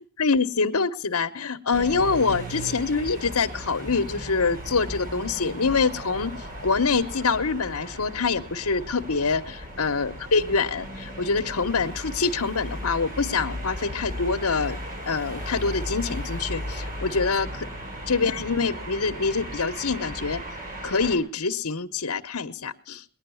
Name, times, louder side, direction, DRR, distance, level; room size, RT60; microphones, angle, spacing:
voice 1, 0.2-14.8 15.0-17.7 18.1-20.4 20.8-23.0, left 4 dB, 75° left, 8 dB, 1.1 m, -25 dB
sound 1, 1.7-21.2, equal, 40° right, 6.2 m, -36 dB
20.5 x 9.8 x 7.0 m, 0.44 s
head